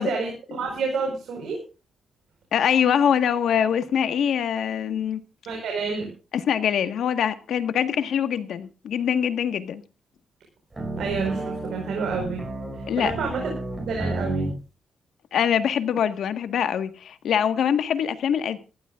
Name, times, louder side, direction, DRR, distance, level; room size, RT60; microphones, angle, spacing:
voice 1, 0.0-1.6 5.5-6.1 11.0-12.5 12.7-13.5 13.8-14.5, right 4 dB, 75° right, 4.8 m, -29 dB
voice 2, 2.5-5.2 6.3-9.8 12.9-13.1 15.3-18.6, left 8 dB, 75° left, 1.5 m, -23 dB
sound 1, 10.7-14.6, right 1 dB, 20° right, 6.4 m, -31 dB
21.0 x 14.5 x 2.5 m
wide cardioid pair, 145°, 0 cm